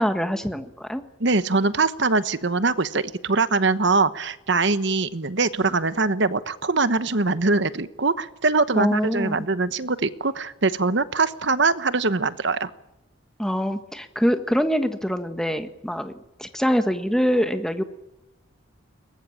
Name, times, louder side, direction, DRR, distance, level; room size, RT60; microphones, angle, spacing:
voice 1, 0.0-1.0 8.7-9.4 13.4-16.1 16.4-17.8, equal, 5° left, 7 dB, 1.5 m, -24 dB
voice 2, 1.2-12.7, right 3 dB, 55° right, 13 dB, 1.1 m, -22 dB
23.0 x 20.0 x 8.8 m, 0.91 s
head